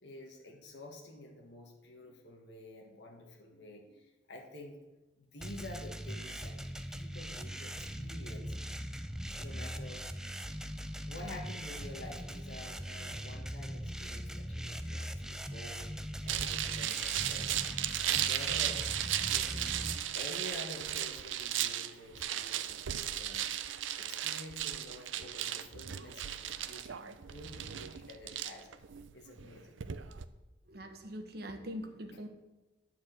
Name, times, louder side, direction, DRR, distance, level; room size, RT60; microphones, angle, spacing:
voice 1, 0.0-4.8 5.2-6.6 6.9-8.6 9.4-10.1 11.1-17.6 18.0-18.8 19.3-19.9 20.1-28.7 29.1-29.8, left 1 dB, 60° left, 0 dB, 1.5 m, -49 dB
sound 1, 5.4-20.0, equal, 5° right, 0.4 m, -41 dB
sound 2, 16.3-30.2, right 11 dB, 80° right, 0.5 m, -36 dB
voice 2, 30.7-32.3, equal, 55° right, 5 dB, 1.2 m, -42 dB
10.5 x 4.6 x 7.8 m, 1.1 s
head